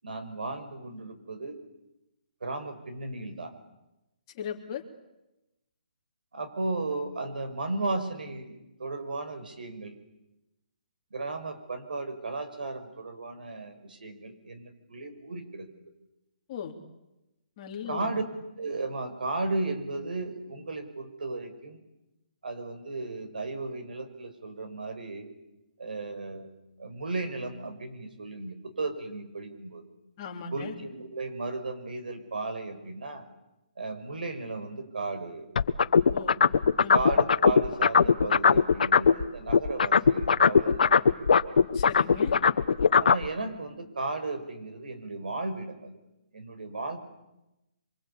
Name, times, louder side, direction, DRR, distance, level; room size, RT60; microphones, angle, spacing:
voice 1, 0.0-1.6 2.4-3.5 6.3-10.0 11.1-15.7 17.9-18.2 18.6-21.8 22.4-25.3 25.8-26.5 26.8-29.8 30.5-33.3 33.8-35.5 36.9-41.2 43.0-45.9 46.3-47.0, right 3 dB, 85° right, 8 dB, 5.7 m, -35 dB
voice 2, 4.4-4.8 16.5-16.7 17.6-18.1 30.2-30.7 36.1-36.4 36.8-37.1 41.7-42.3, left 7 dB, 30° left, 2 dB, 3.3 m, -38 dB
sound 1, 35.6-39.2 39.5-43.3, left 6 dB, 70° left, 1.2 m, -20 dB
27.5 x 24.5 x 8.6 m, 0.96 s
hypercardioid pair, 165°, 5 cm